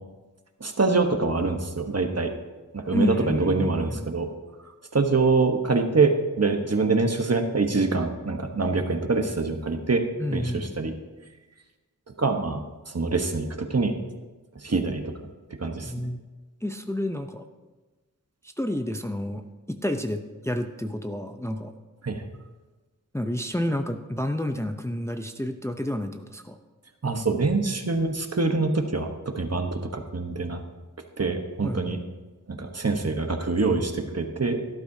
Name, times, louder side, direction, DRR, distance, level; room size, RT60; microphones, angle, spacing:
voice 1, 0.6-2.3 2.7-4.3 4.9-10.0 10.3-10.9 12.2-12.6 12.9-13.9 14.6-15.0 15.6-15.9 22.0-22.2 27.0-30.6 31.2-32.0 32.5-34.6, right 3 dB, 50° right, 5 dB, 1.1 m, -25 dB
voice 2, 2.9-4.1 10.2-10.7 15.8-16.2 16.6-17.4 18.4-19.4 19.7-21.7 23.1-26.6 31.6-32.0, left 1 dB, 10° left, 6 dB, 0.6 m, -29 dB
17.5 x 11.5 x 2.8 m, 1.2 s
wide cardioid pair, 60°, 33 cm